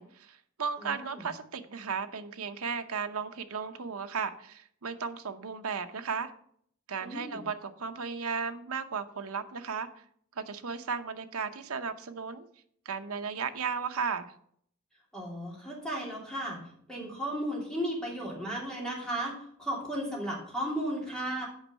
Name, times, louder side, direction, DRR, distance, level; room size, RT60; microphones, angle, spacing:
voice 1, 0.0-6.3 6.9-9.9 10.4-12.5 12.8-14.3, right 5 dB, 85° right, 8 dB, 0.8 m, -35 dB
voice 2, 0.8-1.3 7.0-7.4 15.1-16.6 16.9-21.5, right 1 dB, 5° left, -3 dB, 2.9 m, -35 dB
8.5 x 5.4 x 6.3 m, 0.64 s
head